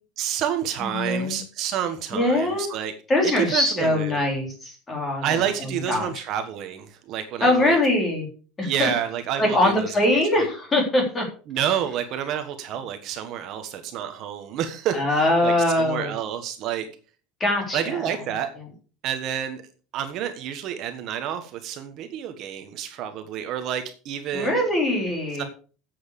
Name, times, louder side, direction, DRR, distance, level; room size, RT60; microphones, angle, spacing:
voice 1, 0.2-2.9 3.2-4.2 5.2-7.8 8.6-10.5 11.5-16.9 17.7-18.5 19.0-19.6 19.9-24.6 25.4-25.5, right 9 dB, 40° right, 7 dB, 1.3 m, -29 dB
voice 2, 0.8-1.4 2.1-2.7 3.1-6.1 7.4-8.3 8.6-8.9 9.4-11.2 14.9-16.1 17.4-18.0 24.3-25.5, left 1 dB, 15° left, 1 dB, 4.0 m, -22 dB
10.5 x 8.0 x 6.7 m, 0.39 s
cardioid pair, 180°, 0 cm